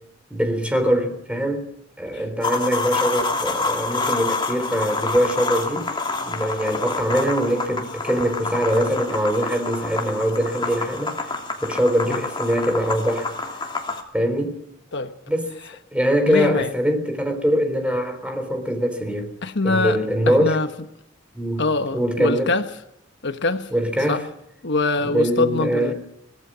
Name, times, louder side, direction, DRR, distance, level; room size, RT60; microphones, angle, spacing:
voice 1, 0.3-1.7 2.0-5.9 6.2-11.1 11.6-13.3 14.1-14.6 15.3-15.5 15.9-19.3 19.6-20.6 21.3-21.6 21.9-22.5 23.7-24.2 25.0-25.9, equal, 5° right, 7 dB, 3.7 m, -22 dB
sound 1, 2.4-14.0, left 3 dB, 25° left, 3.0 m, -27 dB
voice 2, 16.3-16.7 19.4-20.0 20.3-20.7 21.6-22.6 23.2-23.7 24.1-24.2 24.6-25.9, left 3 dB, 60° left, 8 dB, 1.3 m, -23 dB
24.0 x 18.5 x 6.3 m, 0.80 s
head